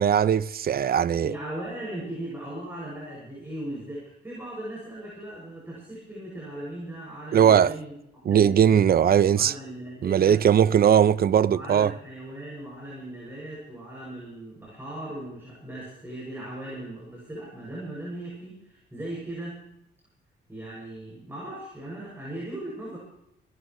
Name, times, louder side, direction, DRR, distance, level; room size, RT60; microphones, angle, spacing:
voice 1, 0.0-1.3 7.3-7.7 8.3-9.5 10.0-11.9, right 8 dB, 50° right, 0.7 m, -19 dB
voice 2, 1.2-7.9 8.2-10.4 11.4-19.7 20.5-23.0, right 1 dB, 10° right, 7.2 m, -38 dB
29.0 x 12.5 x 3.2 m
cardioid pair, 90°, 20 cm